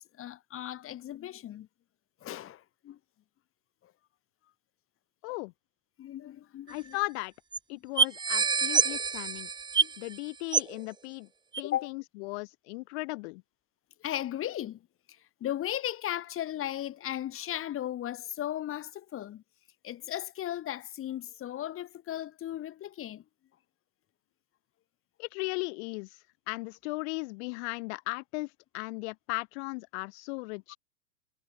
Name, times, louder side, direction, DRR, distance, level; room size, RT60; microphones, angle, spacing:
voice 1, 0.0-1.7 2.2-3.0 3.8-3.9 6.0-7.0 7.7-7.8 9.8-9.9 11.6-11.9 14.0-14.8 15.1-19.4 19.8-23.2, left 12 dB, 30° left, 3.3 m, -36 dB
voice 2, 6.7-7.3 7.7-9.5 10.0-11.3 11.6-13.4 25.2-30.8, left 29 dB, 55° left, 4.2 m, -37 dB
sound 1, 6.7-6.8 7.0-7.1 7.5-7.6 8.0-10.2 10.5-10.8 11.5-11.6, right 5 dB, 10° right, 0.9 m, -27 dB
hypercardioid pair, 95°, 40 cm